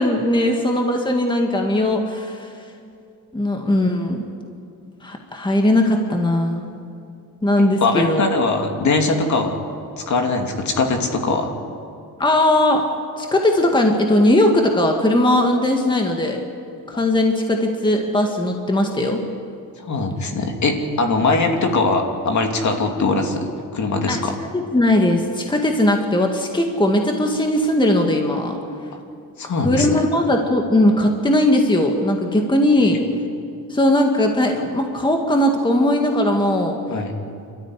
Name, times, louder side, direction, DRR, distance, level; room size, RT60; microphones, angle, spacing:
voice 1, 0.0-2.5 3.3-4.2 5.0-6.6 7.4-8.2 12.2-12.8 13.2-16.4 16.9-19.2 24.1-24.2 24.5-28.5 29.6-33.0 33.7-36.8, left 1 dB, 10° left, 2 dB, 1.9 m, -18 dB
voice 2, 7.8-9.6 10.1-11.5 19.9-24.3 29.4-29.9 32.8-33.0 36.9-37.1, left 3 dB, 45° left, 3 dB, 2.8 m, -21 dB
27.5 x 13.5 x 10.0 m, 2.6 s
cardioid pair, 135°, 39 cm